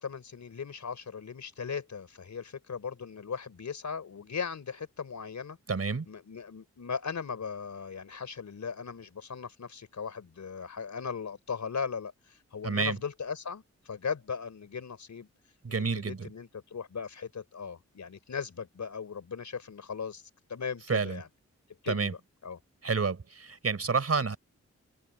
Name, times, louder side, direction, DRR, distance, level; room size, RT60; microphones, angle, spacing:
voice 1, 0.0-5.6 6.1-15.3 15.7-20.2 20.5-21.3 21.8-22.2 22.4-22.6, left 6 dB, 75° left, 4.5 m, -38 dB
voice 2, 5.7-6.1 12.6-13.0 15.6-16.3 20.9-21.2 21.9-22.1 22.8-24.4, right 4 dB, 55° right, 4.2 m, -29 dB
open air
cardioid pair, 65°, 29 cm